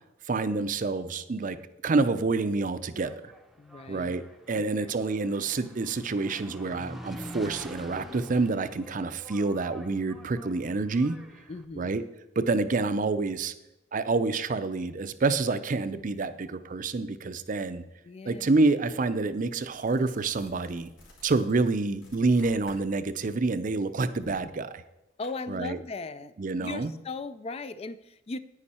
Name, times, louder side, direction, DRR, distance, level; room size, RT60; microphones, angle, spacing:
voice 1, 0.3-1.6 1.8-3.3 3.9-4.2 4.5-11.2 11.8-12.0 12.4-13.5 13.9-17.8 18.3-20.9 21.2-24.8 25.5-25.8 26.4-26.9, right 3 dB, 45° right, 12 dB, 0.5 m, -27 dB
Engine, 2.8-11.7, equal, ahead, 0.7 m, -46 dB
voice 2, 3.6-4.1 4.5-4.6 9.1-9.2 11.5-12.0 18.0-18.5 25.2-26.3 26.6-28.4, left 3 dB, 30° left, 14 dB, 0.4 m, -38 dB
sound 1, 18.6-18.7 19.1-22.9 23.2-25.3, left 1 dB, 85° left, 3.5 m, -53 dB
9.8 x 9.5 x 4.3 m, 0.93 s
head